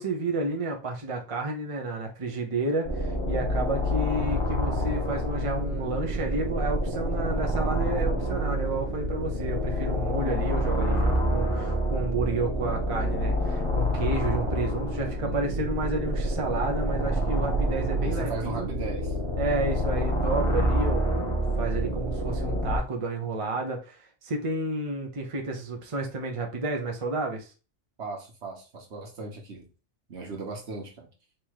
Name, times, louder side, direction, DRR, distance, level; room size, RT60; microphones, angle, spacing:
voice 1, 0.0-18.7 19.4-27.5, right 2 dB, 30° right, 2 dB, 0.8 m, -31 dB
sound 1, 2.9-22.8, equal, 30° left, 0.9 m, -27 dB
voice 2, 15.2-15.6 17.9-19.2 28.0-29.7 30.1-31.1, right 3 dB, 65° right, 1 dB, 1.5 m, -37 dB
3.6 x 3.0 x 4.7 m, 0.33 s
omnidirectional pair, 1.3 m